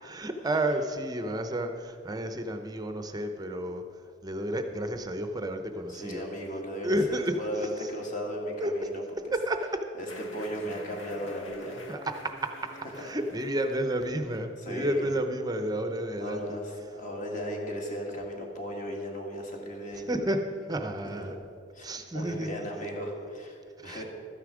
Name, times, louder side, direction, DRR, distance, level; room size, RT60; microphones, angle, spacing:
voice 1, 0.0-3.8 4.2-6.3 6.8-7.4 7.8-7.9 8.6-8.9 9.3-9.8 11.9-16.6 19.9-21.4 21.8-22.7 23.8-24.0, right 1 dB, 20° right, 7 dB, 0.6 m, -31 dB
voice 2, 5.9-9.0 10.0-11.8 14.7-15.1 16.2-20.1 21.3-21.4 21.7-24.0, equal, 40° left, 0 dB, 1.8 m, -36 dB
sound 1, 10.1-15.7, left 2 dB, 70° left, 1.2 m, -48 dB
13.0 x 9.7 x 4.9 m, 2.5 s
head